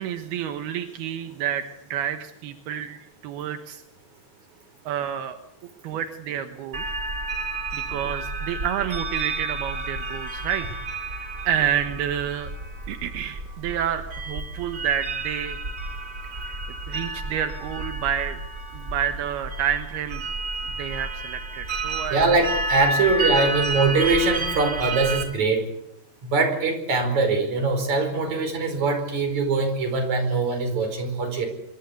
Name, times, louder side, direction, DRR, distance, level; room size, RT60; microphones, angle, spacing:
voice 1, 0.0-3.8 4.9-5.4 5.8-6.8 7.7-10.8 11.4-12.5 12.9-15.6 16.4-16.6 16.9-18.4 18.7-20.3 20.7-22.2 22.8-23.0 23.3-23.5, right 9 dB, 80° right, 7 dB, 3.3 m, -29 dB
sound 1, 6.7-25.2, right 2 dB, 25° right, 4.1 m, -31 dB
voice 2, 22.1-25.6 26.2-31.5, right 3 dB, 45° right, 7 dB, 6.1 m, -22 dB
25.5 x 23.5 x 8.3 m, 0.78 s
omnidirectional pair, 4.5 m